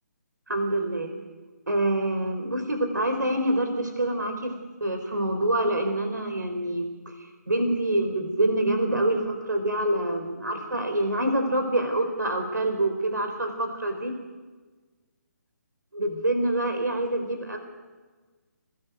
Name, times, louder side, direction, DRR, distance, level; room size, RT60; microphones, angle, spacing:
voice 1, 0.5-1.3 1.7-14.2 15.9-17.6, right 1 dB, 90° right, 5 dB, 4.2 m, -26 dB
27.0 x 19.5 x 8.0 m, 1.4 s
figure-of-eight pair, 145°, 10 cm